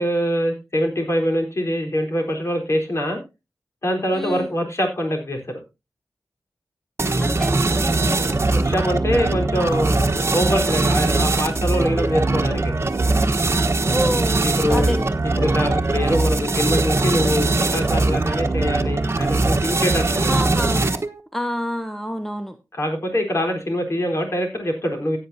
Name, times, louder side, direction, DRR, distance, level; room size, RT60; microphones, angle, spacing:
voice 1, 0.0-3.2 3.8-5.4 8.5-12.7 14.4-14.9 15.4-20.3 22.7-25.2, equal, 45° left, 2 dB, 4.1 m, -24 dB
voice 2, 4.1-4.5 7.2-9.0 13.9-15.3 20.3-20.9 21.3-22.6, equal, 5° left, 9 dB, 1.0 m, -29 dB
sound 1, 7.0-21.2, right 2 dB, 45° right, 1.2 m, -21 dB
16.0 x 9.0 x 2.8 m, 0.26 s
wide cardioid pair, 80°, 6 cm